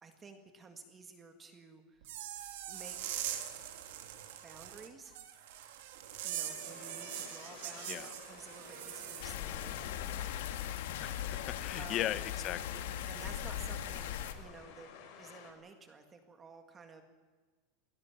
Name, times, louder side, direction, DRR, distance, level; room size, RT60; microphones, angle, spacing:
voice 1, 0.0-2.1 2.7-3.3 4.4-5.2 6.2-10.3 11.7-12.3 13.1-17.0, right 4 dB, 20° right, 6 dB, 1.9 m, -53 dB
sound 1, 2.0-9.3, right 11 dB, 75° right, 2.8 m, -42 dB
sound 2, 6.1-15.5, left 7 dB, 55° left, 4.9 m, -53 dB
sound 3, 9.2-14.3, left 10 dB, 80° left, 2.2 m, -39 dB
voice 2, 11.0-13.1, left 13 dB, 35° left, 13 dB, 1.1 m, -38 dB
21.0 x 17.5 x 9.7 m, 1.4 s
supercardioid pair, 155°, 0 cm